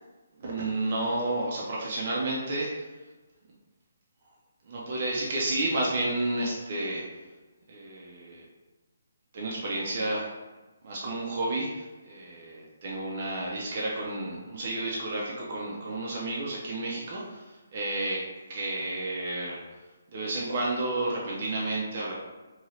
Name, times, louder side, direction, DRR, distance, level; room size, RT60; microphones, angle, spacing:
voice 1, 0.4-2.9 4.7-7.0 7.7-8.4 9.3-10.3 10.8-18.2 18.5-19.6 20.1-22.1, right 2 dB, 35° right, -4 dB, 0.4 m, -31 dB
2.7 x 2.6 x 3.1 m, 1.2 s
hypercardioid pair, 175°, 0 cm